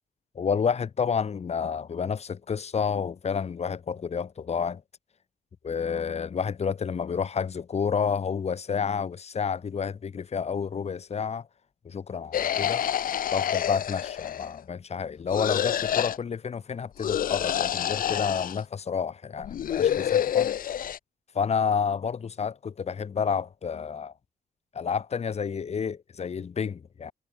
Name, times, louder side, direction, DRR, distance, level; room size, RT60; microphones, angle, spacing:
voice 1, 0.3-4.8 5.6-11.5 11.8-12.8 13.3-20.5 21.3-24.1 24.7-27.1, left 6 dB, 45° left, 3.3 m, -30 dB
sound 1, 12.3-14.6 15.3-16.2 17.0-18.6 19.4-21.0, left 10 dB, 65° left, 1.5 m, -27 dB
cardioid pair, 120°, 16 cm